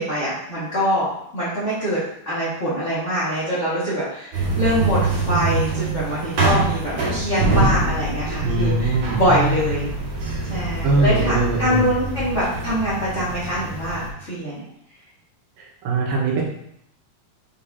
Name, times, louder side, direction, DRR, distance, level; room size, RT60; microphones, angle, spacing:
voice 1, 0.0-2.0 2.2-8.9 9.1-9.9 10.5-14.6, equal, 30° left, -11 dB, 1.5 m, -24 dB
sound 1, 4.3-14.1, right 2 dB, 50° right, 2.8 m, -24 dB
voice 2, 8.4-9.2 10.8-11.8 14.6-14.7 15.6-16.4, right 3 dB, 85° right, -2 dB, 3.0 m, -22 dB
7.2 x 5.0 x 2.8 m, 0.74 s
omnidirectional pair, 4.1 m